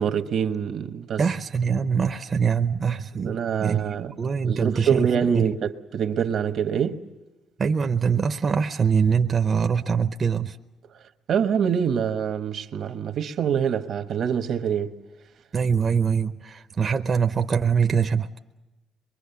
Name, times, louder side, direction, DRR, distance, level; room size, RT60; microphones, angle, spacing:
voice 1, 0.0-1.2 3.1-4.2 4.4-7.0 11.3-14.9, right 7 dB, 70° right, 1.2 m, -25 dB
voice 2, 1.2-3.8 4.2-5.1 5.3-5.5 7.6-10.6 15.5-18.3, right 6 dB, 45° right, 0.7 m, -23 dB
23.5 x 23.0 x 7.0 m
cardioid pair, 90°, 0 cm